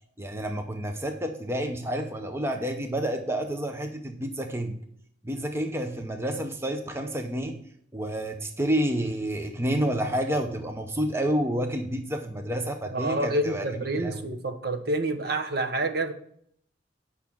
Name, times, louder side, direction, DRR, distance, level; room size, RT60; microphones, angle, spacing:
voice 1, 0.2-4.8 5.2-7.6 7.9-13.7 13.9-14.3, right 1 dB, 15° right, 0.7 m, -29 dB
voice 2, 12.8-16.1, right 2 dB, 55° right, 1.0 m, -28 dB
9.1 x 5.8 x 6.0 m
head